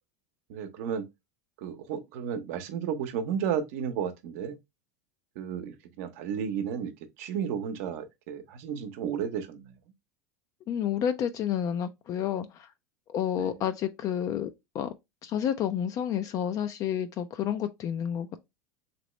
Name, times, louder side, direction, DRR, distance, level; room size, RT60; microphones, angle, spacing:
voice 1, 0.5-1.1 1.6-4.6 5.4-6.9 7.2-9.7 13.3-13.6, right 8 dB, 65° right, 0.8 m, -33 dB
voice 2, 10.7-12.7 13.1-14.5 14.7-14.9 15.2-18.4, left 9 dB, 40° left, 0.4 m, -30 dB
3.0 x 2.9 x 3.0 m
hypercardioid pair, 105°, 9 cm